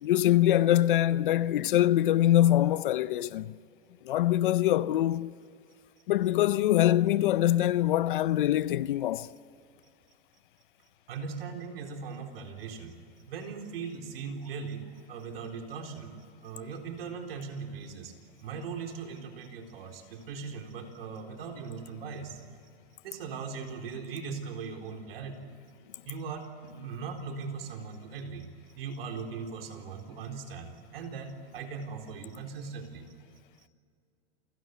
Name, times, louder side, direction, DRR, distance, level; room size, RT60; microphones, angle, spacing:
voice 1, 0.0-3.5 4.0-5.3 6.1-9.3, left 13 dB, 55° left, 0.6 m, -24 dB
voice 2, 11.1-12.9 13.3-16.1 16.4-18.1 18.4-22.4 23.0-25.5 26.0-26.5 26.7-28.5 28.7-33.1, right 5 dB, 65° right, 4.2 m, -39 dB
29.0 x 18.0 x 9.5 m
supercardioid pair, 175°, 31 cm